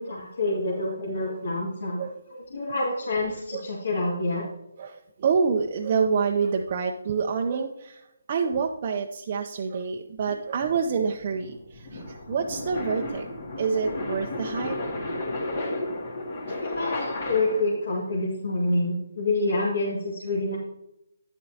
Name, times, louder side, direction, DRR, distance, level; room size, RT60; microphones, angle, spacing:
voice 1, 0.0-2.0 2.3-4.4 16.6-20.6, left 2 dB, 65° left, -3 dB, 1.9 m, -27 dB
voice 2, 4.8-8.0 8.3-13.3 13.6-14.8 16.5-16.6, right 5 dB, 35° right, 1 dB, 0.6 m, -27 dB
sound 1, 10.2-17.8, left 2 dB, 45° left, 2.3 m, -33 dB
10.0 x 7.7 x 2.8 m, 0.85 s
hypercardioid pair, 160°, 0 cm